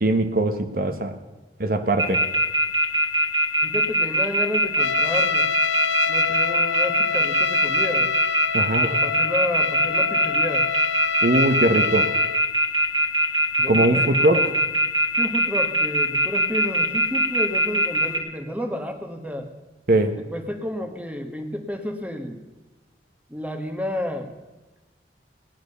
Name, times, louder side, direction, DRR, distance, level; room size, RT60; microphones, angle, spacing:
voice 1, 0.0-1.1 1.6-2.2 8.5-8.9 11.2-12.1 13.7-14.4 19.9-20.1, right 1 dB, 55° right, 7 dB, 1.0 m, -21 dB
sound 1, 2.0-18.2, right 1 dB, 25° right, 1.8 m, -21 dB
voice 2, 3.6-5.4 6.1-8.1 8.8-10.7 13.6-14.5 15.2-19.5 20.2-22.4 23.3-24.3, left 1 dB, 10° right, 6 dB, 1.4 m, -31 dB
Trumpet, 4.8-12.5, left 6 dB, 90° left, 0.6 m, -27 dB
18.0 x 10.5 x 6.7 m, 1.1 s
head